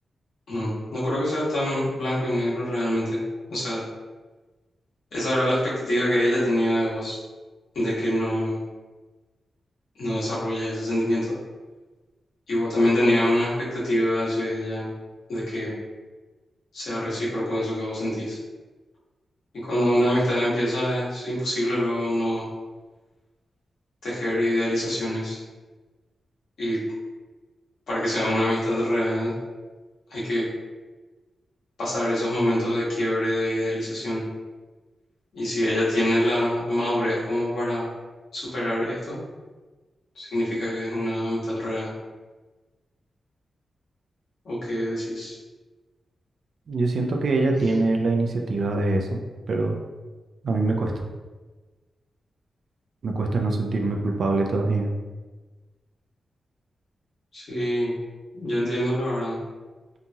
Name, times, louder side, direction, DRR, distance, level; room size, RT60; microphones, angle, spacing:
voice 1, 0.5-3.2 3.5-3.8 5.1-7.2 7.7-8.6 10.0-11.3 12.5-14.9 15.3-15.7 16.7-18.4 19.6-22.5 24.0-25.4 26.6-26.8 27.9-29.3 30.1-30.5 31.8-34.2 35.3-37.9 38.3-39.2 40.1-41.9 44.4-45.3 57.3-57.9 58.3-59.4, left 1 dB, 70° left, -8 dB, 1.2 m, -25 dB
voice 2, 46.7-49.8 50.4-51.0 53.0-54.9, right 2 dB, 60° right, 2 dB, 0.3 m, -24 dB
2.9 x 2.3 x 2.7 m, 1.3 s
wide cardioid pair, 160°, 0 cm